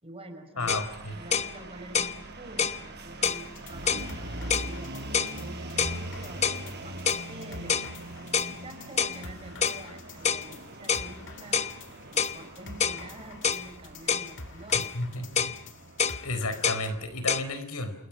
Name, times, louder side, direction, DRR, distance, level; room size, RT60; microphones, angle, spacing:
voice 1, 0.0-0.7 1.1-5.1 5.3-7.8 8.5-11.6 12.1-15.3, right 1 dB, 25° right, 6 dB, 4.9 m, -46 dB
voice 2, 0.6-1.2 14.9-15.5 16.2-18.1, left 2 dB, 85° left, 10 dB, 4.3 m, -32 dB
sound 1, 0.6-17.5, right 1 dB, 50° right, 5.6 m, -42 dB
sound 2, 0.7-0.9 1.3-1.5 1.9-2.2 2.6-2.8 3.2-3.4 3.9-4.1 4.5-4.7 5.1-5.4 5.8-6.0 6.4-6.6 7.1-7.3 7.7-7.9 8.3-8.5 9.0-9.2 9.6-9.8 10.2-10.5 10.9-11.1 11.5-11.7 12.2-12.4 12.8-13.0 13.4-13.7 14.1-14.3 14.7-14.9 15.4-15.6 16.0-16.2 16.6-16.8 17.3-17.4, left 6 dB, 30° left, 0.9 m, -27 dB
sound 3, 3.2-16.9, left 3 dB, 55° left, 2.2 m, -48 dB
29.5 x 28.0 x 6.1 m, 0.80 s
head